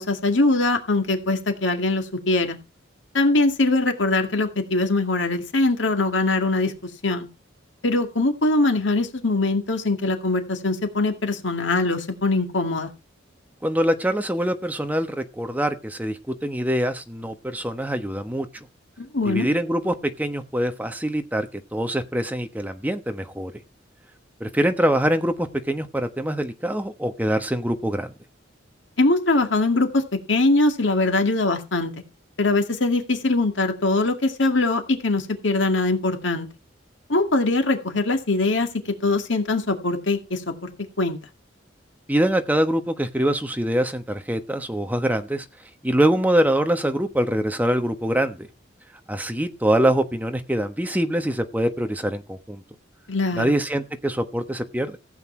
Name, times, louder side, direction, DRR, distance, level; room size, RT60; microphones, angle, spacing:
voice 1, 0.0-2.6 3.1-7.3 7.8-12.9 19.0-19.5 29.0-30.0 30.3-31.9 32.4-36.5 37.1-40.7 41.0-41.2 53.1-53.5, left 2 dB, 70° left, 6 dB, 2.1 m, -22 dB
voice 2, 13.6-18.7 19.2-23.5 24.4-28.1 42.1-45.4 45.8-48.5 49.1-52.6 53.3-55.0, right 1 dB, 10° right, 7 dB, 1.2 m, -24 dB
15.0 x 8.3 x 4.5 m, 0.28 s
head